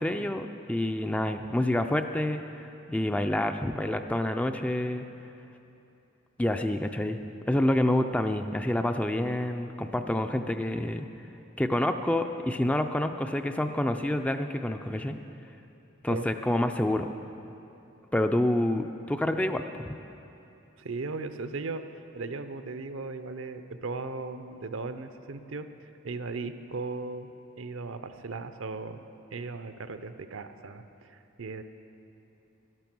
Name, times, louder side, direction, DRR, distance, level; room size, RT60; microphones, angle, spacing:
voice 1, 0.0-5.1 6.4-7.2 7.5-11.1 11.6-15.2 16.0-17.1 18.1-20.0, left 1 dB, 5° left, 7 dB, 0.3 m, -28 dB
voice 2, 20.8-27.3 27.6-29.0 29.3-31.6, right 3 dB, 70° right, 9 dB, 0.6 m, -37 dB
12.5 x 12.0 x 6.1 m, 2.8 s
head